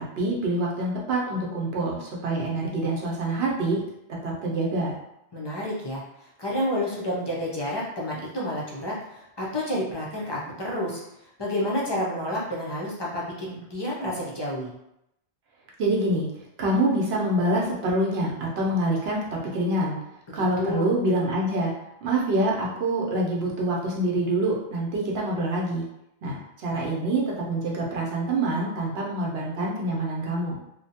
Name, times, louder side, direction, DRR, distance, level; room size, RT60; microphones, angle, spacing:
voice 1, 0.0-3.8 4.1-4.9 15.8-16.3 16.6-20.0 20.3-21.7 22.0-25.8 26.2-30.6, right 1 dB, 70° right, -3 dB, 0.9 m, -26 dB
voice 2, 5.3-14.7 20.3-20.9, left 1 dB, 35° left, -5 dB, 0.4 m, -30 dB
2.7 x 2.1 x 2.7 m, 0.83 s
omnidirectional pair, 1.2 m